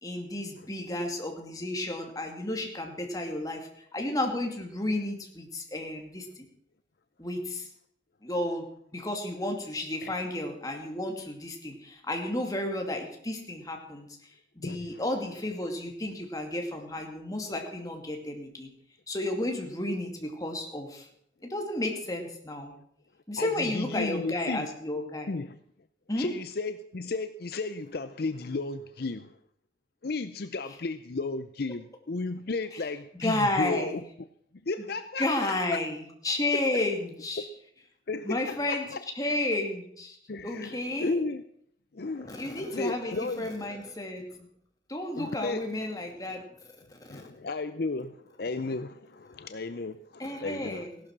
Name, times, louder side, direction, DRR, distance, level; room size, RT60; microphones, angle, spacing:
voice 1, 0.0-6.5 7.2-7.7 8.2-14.1 14.6-18.7 19.1-21.1 21.4-22.7 23.3-25.3 26.1-26.3 33.2-34.0 35.2-37.5 38.2-38.8 39.2-40.2 40.4-41.2 42.3-44.5 44.9-46.4 46.9-47.3 50.2-51.0, left 1 dB, 20° left, 2 dB, 2.4 m, -32 dB
voice 2, 14.6-15.0 23.4-24.7 25.3-25.6 26.1-29.4 30.0-34.0 34.6-35.5 36.5-36.6 37.4-37.5 38.1-39.0 40.3-41.4 41.9-43.5 45.2-45.6 47.1-50.9, left 3 dB, 55° left, 11 dB, 0.6 m, -34 dB
16.5 x 11.5 x 6.0 m, 0.68 s
head